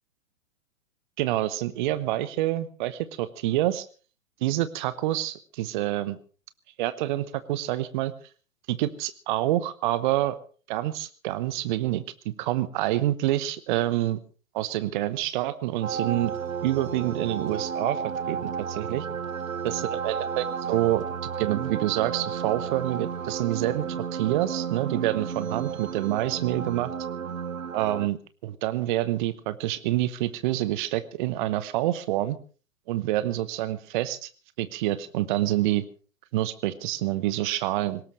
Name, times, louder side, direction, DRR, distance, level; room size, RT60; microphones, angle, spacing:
voice 1, 1.2-3.9 4.4-6.2 6.8-8.1 8.7-10.4 10.7-14.2 14.5-16.3 16.6-18.0 18.3-19.1 19.6-21.0 21.4-23.9 24.1-26.9 27.7-28.2 28.4-32.4 32.9-34.3 34.6-35.8 36.3-38.0, right 14 dB, 35° right, 15 dB, 1.0 m, -27 dB
sound 1, 15.8-28.1, right 7 dB, 80° right, 0.8 m, -32 dB
22.0 x 19.0 x 3.2 m, 0.39 s
figure-of-eight pair, 110°, 41 cm